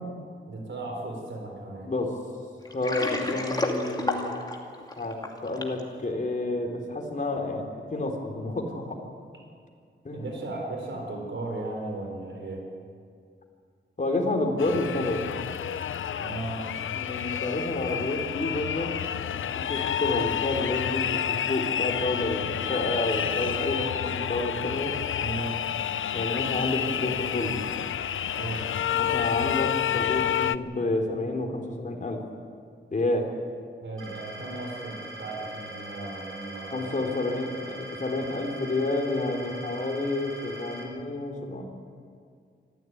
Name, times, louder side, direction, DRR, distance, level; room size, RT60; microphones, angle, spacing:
voice 1, 0.5-1.9 10.1-12.7 16.2-16.7 25.2-25.6 28.4-28.8 33.8-36.9, right 2 dB, 70° right, 1 dB, 4.6 m, -36 dB
Water, 2.6-5.8, left 2 dB, 20° left, 2.7 m, -30 dB
voice 2, 2.7-4.3 5.0-5.2 5.4-9.0 10.0-10.3 14.0-15.2 16.9-19.0 19.3-24.9 26.1-27.6 28.7-32.2 32.9-33.3 36.7-41.6, left 2 dB, 40° left, 1 dB, 3.8 m, -29 dB
sound 1, 14.6-30.6, left 9 dB, 90° left, 0.6 m, -29 dB
sound 2, 34.0-40.8, right 1 dB, 85° right, 4.3 m, -42 dB
25.5 x 15.0 x 9.5 m, 2.2 s
wide cardioid pair, 120°, 20 cm